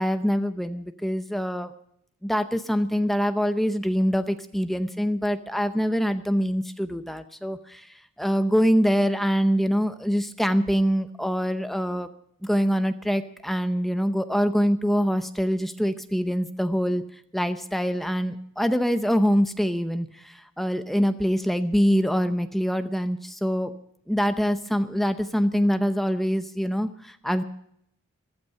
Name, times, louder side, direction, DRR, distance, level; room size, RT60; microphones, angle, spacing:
voice 1, 0.0-1.7 2.2-7.8 8.2-12.1 12.4-17.0 17.3-20.1 20.6-23.7 24.1-27.4, equal, ahead, 8 dB, 0.7 m, -24 dB
15.0 x 12.5 x 5.7 m, 0.71 s
head